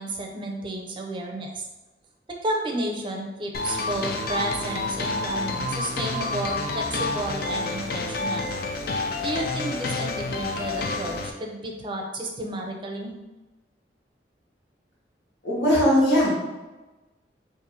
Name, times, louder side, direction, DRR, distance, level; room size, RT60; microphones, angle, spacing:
voice 1, 0.0-1.6 2.3-8.5 9.2-13.1, right 1 dB, 30° right, 1 dB, 0.5 m, -32 dB
sound 1, 3.5-11.3, left 3 dB, 55° left, 0.3 m, -29 dB
voice 2, 15.4-16.3, equal, 80° left, -6 dB, 1.3 m, -19 dB
2.7 x 2.5 x 4.1 m, 1.1 s
head